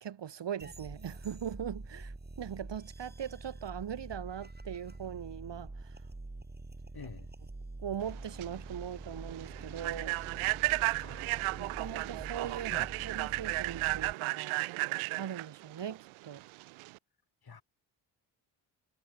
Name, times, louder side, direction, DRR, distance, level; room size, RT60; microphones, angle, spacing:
voice 1, 0.0-6.0 7.8-10.2 11.6-12.7 13.0-14.6 15.2-16.4, right 9 dB, 60° right, 2.2 m, -40 dB
sound 1, 0.6-14.1, right 2 dB, 20° right, 7.0 m, -46 dB
voice 2, 6.9-7.3 11.0-11.3 12.7-12.9 17.4-17.6, left 6 dB, 50° left, 7.4 m, -47 dB
Human voice / Train, 8.1-17.0, right 23 dB, 85° right, 0.5 m, -34 dB
supercardioid pair, 50°, 48 cm